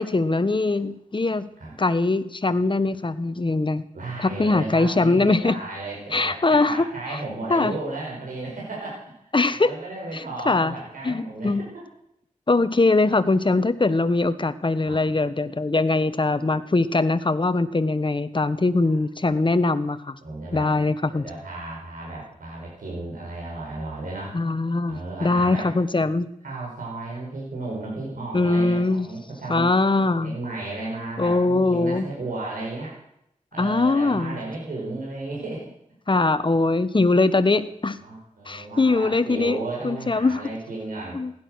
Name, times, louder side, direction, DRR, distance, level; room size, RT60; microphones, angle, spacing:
voice 1, 0.0-1.5 1.8-3.8 4.2-5.5 6.1-6.8 7.5-7.7 9.3-9.7 10.1-10.7 11.0-11.6 12.5-20.2 20.5-21.2 24.3-26.3 28.3-29.1 29.5-30.4 31.2-32.1 33.6-34.4 36.1-38.0 38.5-39.6 39.8-40.4 41.1-41.3, left 3 dB, 35° left, 12 dB, 1.3 m, -22 dB
voice 2, 3.9-9.0 9.6-11.7 14.8-15.0 19.2-19.4 20.2-20.7 21.1-24.4 24.9-25.7 26.4-29.7 30.2-33.0 33.5-35.7 38.0-41.2, right 2 dB, 85° right, -3 dB, 4.9 m, -34 dB
16.5 x 11.5 x 6.4 m, 0.76 s
cardioid pair, 55°, 14 cm